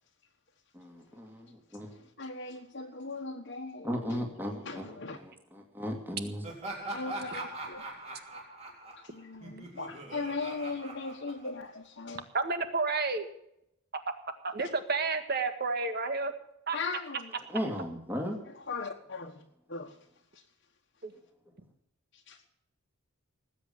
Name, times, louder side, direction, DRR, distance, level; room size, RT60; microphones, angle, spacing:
voice 1, 0.7-2.0 3.8-6.4 17.5-18.4, equal, 10° right, 2.4 m, -36 dB
voice 2, 2.2-3.9 4.6-5.2 6.9-7.9 8.9-12.2 14.6-14.7 16.7-17.3 18.7-19.4 19.7-19.9 22.1-22.5, left 4 dB, 55° left, 1.4 m, -38 dB
Laughter, 6.4-11.9, right 2 dB, 30° right, 3.9 m, -42 dB
voice 3, 12.3-13.3 14.4-16.3 16.7-16.8 21.0-21.1, right 4 dB, 50° right, 1.7 m, -30 dB
19.5 x 8.4 x 7.1 m
head